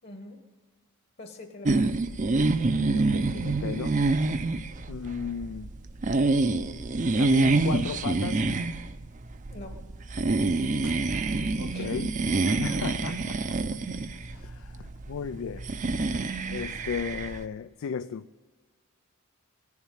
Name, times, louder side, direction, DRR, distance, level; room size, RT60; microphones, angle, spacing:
voice 1, 0.0-0.4 1.2-1.9 9.5-9.8 11.7-11.9, left 2 dB, 50° left, 4 dB, 1.3 m, -43 dB
sound 1, 1.6-17.4, right 3 dB, 35° right, 0.5 m, -27 dB
voice 2, 2.8-4.0 4.9-5.7 7.2-8.5 10.8-11.0 11.6-12.1 12.4-13.6 14.3-15.7 16.5-18.3, left 7 dB, 70° left, 13 dB, 0.3 m, -35 dB
18.0 x 7.3 x 9.1 m, 1.4 s
head